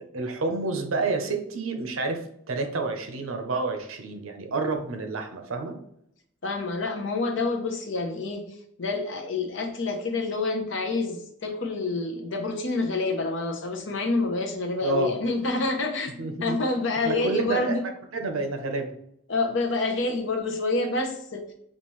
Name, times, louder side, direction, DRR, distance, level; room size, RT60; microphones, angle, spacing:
voice 1, 0.1-5.8 14.8-15.2 16.2-16.6 17.0-17.8 18.1-18.9, right 3 dB, 80° right, 5 dB, 0.7 m, -29 dB
voice 2, 6.4-17.8 19.3-21.4, left 3 dB, 60° left, 3 dB, 0.7 m, -28 dB
5.4 x 2.5 x 3.0 m, 0.73 s
head